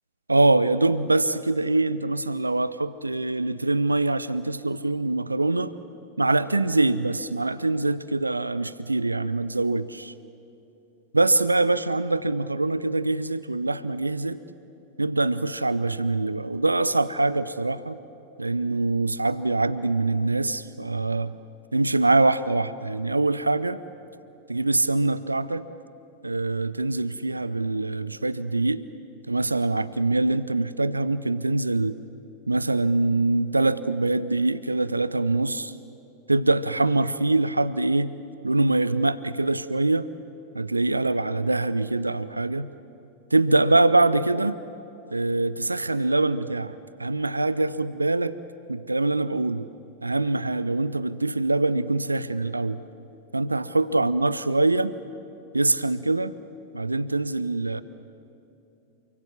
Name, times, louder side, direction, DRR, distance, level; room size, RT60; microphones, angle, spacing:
voice 1, 0.3-5.7 6.2-10.1 11.1-14.4 15.0-18.0 18.4-21.4 21.7-23.8 24.5-25.6 26.2-28.8 29.3-32.0 32.5-35.7 36.3-38.1 38.4-40.1 40.5-42.7 43.3-44.6 45.1-46.7 47.0-48.3 48.7-49.7 50.0-52.8 53.3-54.9 55.5-56.3 56.7-57.8, right 2 dB, 80° right, 16 dB, 0.6 m, -24 dB
28.5 x 24.5 x 7.2 m, 2.9 s
figure-of-eight pair, 90°, 0 cm